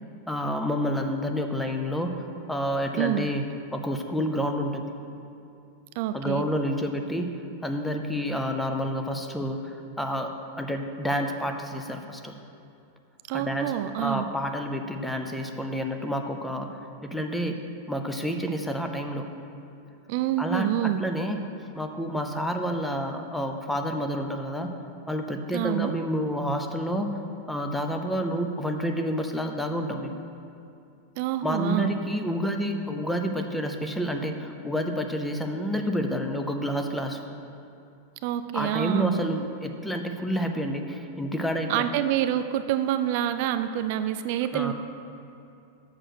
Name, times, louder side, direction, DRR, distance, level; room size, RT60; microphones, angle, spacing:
voice 1, 0.3-2.2 2.5-3.4 3.7-4.9 6.1-12.3 13.3-17.6 17.9-19.3 20.4-21.4 21.7-24.7 25.1-27.2 27.5-30.2 31.4-37.2 38.5-41.8 44.5-44.7, equal, 5° left, 4 dB, 0.5 m, -29 dB
voice 2, 6.0-6.5 13.3-14.3 20.1-21.0 25.5-25.9 31.2-31.9 38.2-39.3 41.7-44.7, right 12 dB, 55° right, 10 dB, 0.3 m, -27 dB
6.6 x 6.0 x 6.4 m, 2.6 s
supercardioid pair, 140°, 0 cm